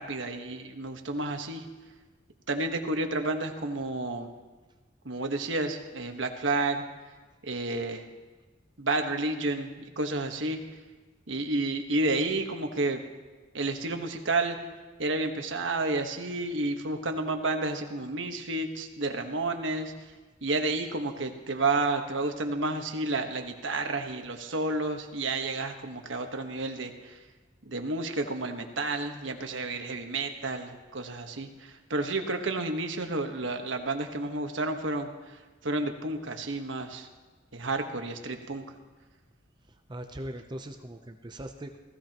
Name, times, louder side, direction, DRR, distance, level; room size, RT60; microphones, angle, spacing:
voice 1, 0.0-1.6 2.5-4.3 5.0-6.8 7.4-8.1 8.8-10.6 11.3-13.0 13.5-14.6 15.0-19.9 20.4-27.1 27.7-35.1 35.6-37.1 37.5-38.6, right 2 dB, 85° right, 5 dB, 1.3 m, -31 dB
voice 2, 39.7-41.8, right 1 dB, 25° right, 5 dB, 0.6 m, -40 dB
18.5 x 15.5 x 3.0 m, 1.3 s
head